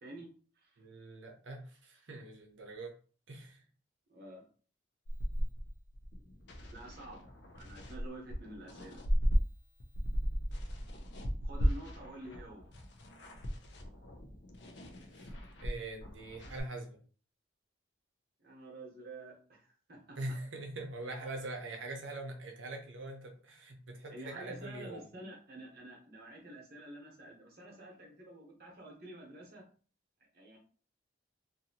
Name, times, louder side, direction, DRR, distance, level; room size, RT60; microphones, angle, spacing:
voice 1, 0.0-0.8 4.1-4.4 6.7-7.3 7.5-9.0 11.4-12.7 18.4-20.2 24.1-29.6 30.3-30.6, right 1 dB, 50° right, -2 dB, 0.9 m, -49 dB
voice 2, 0.8-2.9 3.3-3.6 15.1-15.3 15.6-17.0 20.2-25.1, right 2 dB, 80° right, 3 dB, 0.7 m, -43 dB
sound 1, 5.0-9.4 9.8-16.6, equal, 60° left, 0.5 m, -36 dB
2.7 x 2.6 x 2.7 m, 0.40 s
head